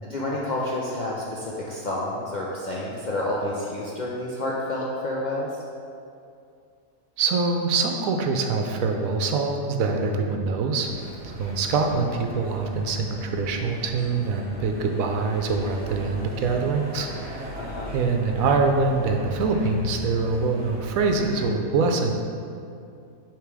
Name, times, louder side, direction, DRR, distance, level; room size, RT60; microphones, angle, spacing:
voice 1, 0.0-5.6 17.6-17.9, left 1 dB, 55° left, -5 dB, 0.5 m, -29 dB
voice 2, 7.2-10.9 11.2-17.5 17.9-22.1, right 4 dB, 75° right, 3 dB, 1.0 m, -24 dB
sound 1, 10.8-21.5, equal, 5° right, 1.3 m, -39 dB
6.8 x 3.2 x 4.7 m, 2.4 s
omnidirectional pair, 1.5 m